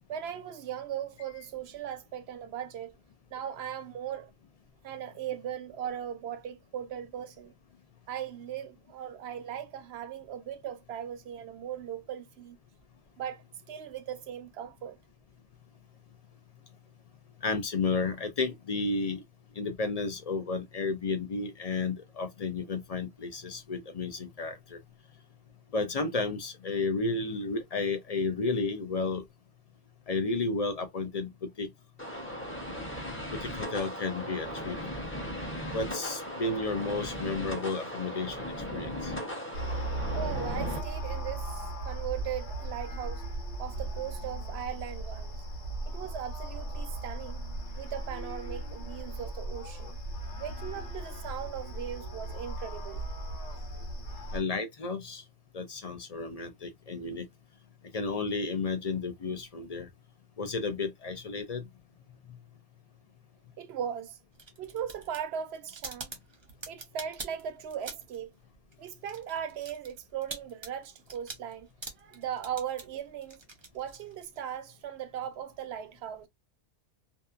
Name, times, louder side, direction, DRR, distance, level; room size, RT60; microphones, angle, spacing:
voice 1, 0.1-3.0 3.3-4.3 4.8-7.5 8.1-12.6 13.2-15.0 40.1-43.2 43.6-45.4 45.9-47.4 47.8-50.0 50.4-53.1 63.6-64.2 64.6-66.1 66.7-68.3 68.8-73.4 73.7-76.3, right 9 dB, 70° right, 0.8 m, -38 dB
voice 2, 17.4-19.2 19.6-24.8 25.7-29.2 30.1-31.7 33.3-34.8 35.7-39.1 54.3-55.2 55.5-57.2 57.9-59.9 60.4-61.6, left 3 dB, 45° left, 0.5 m, -32 dB
sound 1, 32.0-40.8, equal, 10° left, 0.8 m, -37 dB
sound 2, 39.5-54.4, right 2 dB, 80° left, 1.2 m, -37 dB
sound 3, 64.3-68.3 68.5-74.4, right 3 dB, 25° right, 0.7 m, -44 dB
2.7 x 2.3 x 2.3 m
omnidirectional pair, 1.2 m